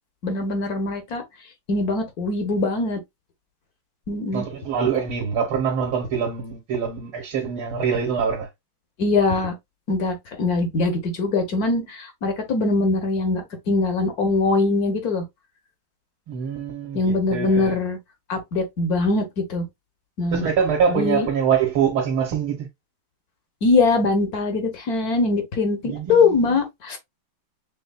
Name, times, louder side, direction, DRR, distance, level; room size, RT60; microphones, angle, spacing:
voice 1, 0.2-1.2 1.7-3.0 4.1-4.5 9.0-9.5 9.9-15.2 16.9-18.0 18.3-19.2 19.5-19.6 20.2-20.5 20.9-21.3 23.6-27.0, left 3 dB, 55° left, 1.2 m, -22 dB
voice 2, 4.3-8.5 16.3-17.8 20.3-22.6 25.8-26.6, right 7 dB, 70° right, 2.1 m, -24 dB
6.3 x 2.8 x 2.3 m
omnidirectional pair, 2.4 m